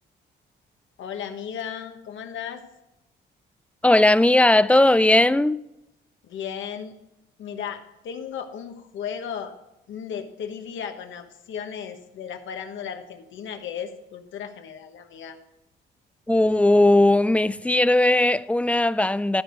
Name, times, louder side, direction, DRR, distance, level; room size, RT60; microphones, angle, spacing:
voice 1, 1.0-2.6 6.3-7.0 7.4-9.5 9.9-15.4, left 8 dB, 75° left, 1.3 m, -35 dB
voice 2, 3.8-5.6 16.3-19.4, left 1 dB, 5° left, 0.3 m, -18 dB
13.0 x 5.2 x 6.3 m
cardioid pair, 90°, 20 cm